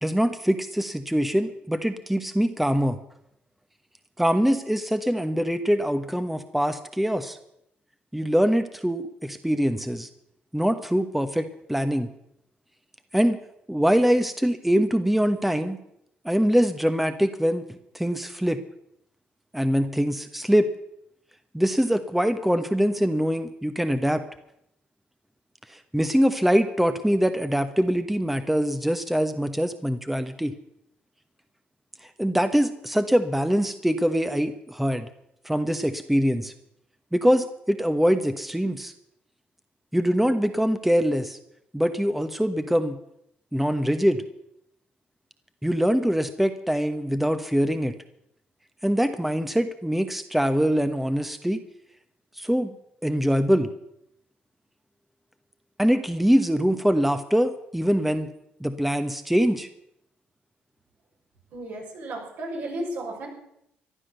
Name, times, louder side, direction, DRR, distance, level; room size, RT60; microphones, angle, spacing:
voice 1, 0.0-3.0 4.2-7.4 8.1-10.1 10.5-12.1 13.1-13.4 13.7-15.8 16.2-17.6 17.9-18.6 19.5-20.7 21.5-24.2 25.7-30.5 32.2-35.1 35.4-36.5 37.1-38.9 39.9-41.4 41.7-43.0 43.5-44.2 45.6-47.9 48.8-51.6 52.4-52.7 53.0-53.7 55.8-58.3 58.6-59.7, equal, 5° right, 9 dB, 1.1 m, -23 dB
voice 2, 61.5-63.3, right 1 dB, 70° right, -1 dB, 5.5 m, -33 dB
14.5 x 11.0 x 6.7 m, 0.77 s
supercardioid pair, 60°, 4 cm